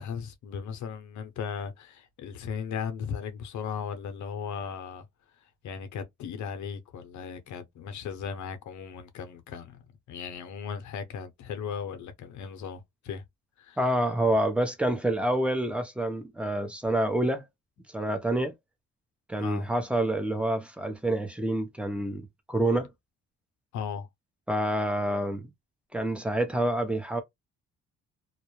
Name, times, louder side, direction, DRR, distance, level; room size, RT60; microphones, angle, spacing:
voice 1, 0.0-5.1 5.6-9.8 10.1-13.2 13.6-13.8 19.4-19.7 23.7-24.1, left 7 dB, 70° left, 0.7 m, -37 dB
voice 2, 13.8-17.4 17.9-18.5 19.3-22.2 22.5-22.9 24.5-25.5 25.9-27.2, right 1 dB, 5° right, 0.7 m, -27 dB
2.3 x 2.0 x 3.0 m
cardioid pair, 90°, 30 cm